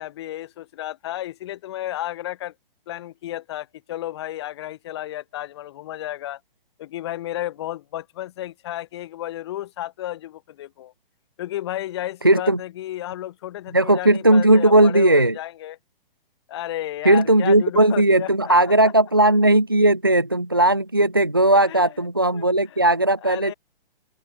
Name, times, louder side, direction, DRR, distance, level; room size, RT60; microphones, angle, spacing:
voice 1, 0.0-2.5 2.9-6.4 6.8-10.9 11.4-15.8 16.5-18.5 21.5-21.9 22.3-22.8 23.2-23.5, left 13 dB, 25° left, 4.2 m, -33 dB
voice 2, 12.2-12.6 13.7-15.4 17.0-23.5, right 1 dB, 25° right, 0.3 m, -17 dB
open air
hypercardioid pair, 175°, 29 cm